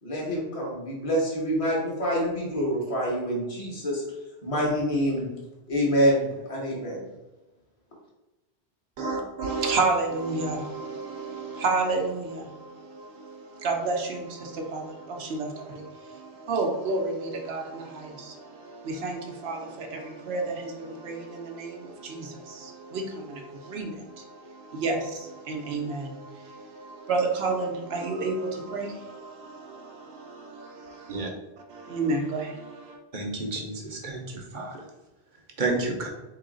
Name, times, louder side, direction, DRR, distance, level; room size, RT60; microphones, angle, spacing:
voice 1, 0.0-4.0 4.4-5.3 5.7-7.1, equal, 30° left, 1.3 m, -26 dB
voice 2, 9.0-31.3 31.7-33.0, right 3 dB, 70° right, 1.0 m, -31 dB
voice 3, 33.1-34.8 35.6-36.1, right 3 dB, 50° right, 0.9 m, -30 dB
3.9 x 3.1 x 3.8 m
omnidirectional pair, 1.1 m